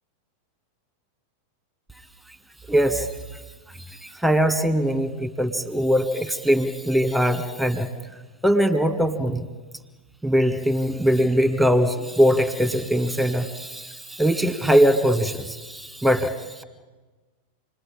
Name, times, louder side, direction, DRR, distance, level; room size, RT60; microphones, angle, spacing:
voice 1, 2.7-3.1 3.9-7.9 8.4-9.5 10.2-16.6, equal, ahead, 9 dB, 2.0 m, -21 dB
29.0 x 21.0 x 8.8 m, 1.3 s
figure-of-eight pair, 90°, 0 cm